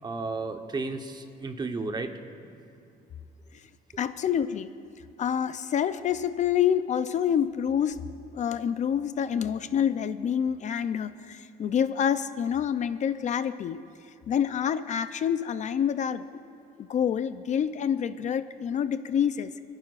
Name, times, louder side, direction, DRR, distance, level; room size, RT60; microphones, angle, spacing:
voice 1, 0.0-2.6, right 3 dB, 25° right, 6 dB, 1.0 m, -34 dB
voice 2, 4.0-4.7 5.2-8.0 8.3-13.8 14.3-16.3 16.8-19.5, left 8 dB, 45° left, 12 dB, 0.5 m, -27 dB
29.0 x 10.5 x 2.5 m, 2.8 s
cardioid pair, 110°, 17 cm